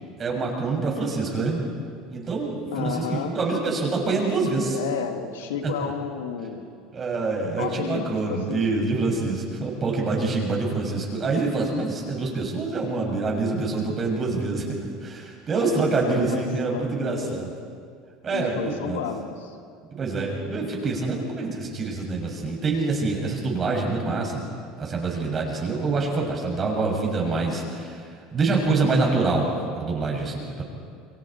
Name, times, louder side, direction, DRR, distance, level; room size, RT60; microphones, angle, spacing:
voice 1, 0.2-1.6 2.1-4.8 5.8-5.9 6.9-14.7 15.0-17.5 18.2-19.0 19.9-24.5 24.8-28.0 28.3-30.6, right 3 dB, 35° right, 0 dB, 6.8 m, -26 dB
voice 2, 2.7-3.3 4.6-6.7 7.6-8.6 15.5-16.4 16.7-17.4 18.3-19.6, left 7 dB, 85° left, 5 dB, 2.2 m, -32 dB
29.0 x 23.0 x 4.6 m, 2.2 s
hypercardioid pair, 90°, 0 cm